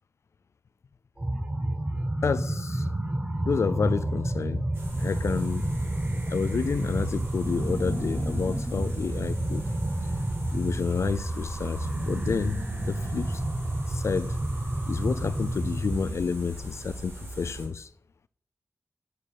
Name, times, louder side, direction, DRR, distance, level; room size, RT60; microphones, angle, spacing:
sound 1, 1.2-16.1, right 1 dB, 25° right, 1.1 m, -30 dB
voice 1, 2.2-2.9 3.4-4.6 5.0-5.7 6.3-9.7 10.5-13.4 13.9-14.4 14.9-17.9, left 5 dB, 65° left, 0.4 m, -29 dB
sound 2, 4.7-17.7, right 1 dB, 50° right, 3.3 m, -41 dB
6.7 x 6.5 x 7.3 m
wide cardioid pair, 100°, 5 cm